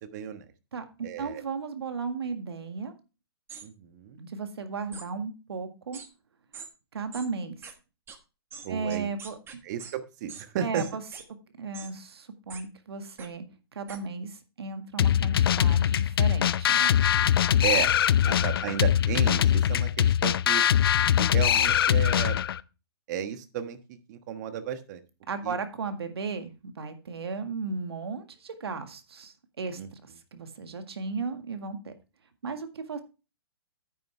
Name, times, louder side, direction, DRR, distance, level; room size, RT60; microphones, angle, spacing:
voice 1, 0.0-0.4 1.0-1.4 3.6-4.2 8.6-9.1 9.6-10.8 17.6-17.9 18.2-20.6 21.2-22.4 23.1-25.0 25.4-25.6 29.8-29.9, right 9 dB, 45° right, 10 dB, 1.3 m, -33 dB
voice 2, 0.7-2.9 4.2-6.0 6.9-7.6 8.7-9.6 10.6-11.0 11.6-13.4 13.8-16.9 18.3-18.4 25.3-31.9 32.4-33.0, right 4 dB, 80° right, 8 dB, 1.8 m, -35 dB
sound 1, 3.5-3.7 4.9-5.1 5.9-6.1 6.5-6.7 7.1-7.3 7.6-7.7 8.1-8.2 8.5-9.9 10.3-10.5 10.7-11.2 11.7-11.9 12.5-12.6 13.2-13.3 13.9-14.0, right 6 dB, 20° right, 1.3 m, -43 dB
sound 2, 15.0-22.6, left 10 dB, 70° left, 0.5 m, -22 dB
9.4 x 9.3 x 3.3 m, 0.30 s
hypercardioid pair, 135°, 13 cm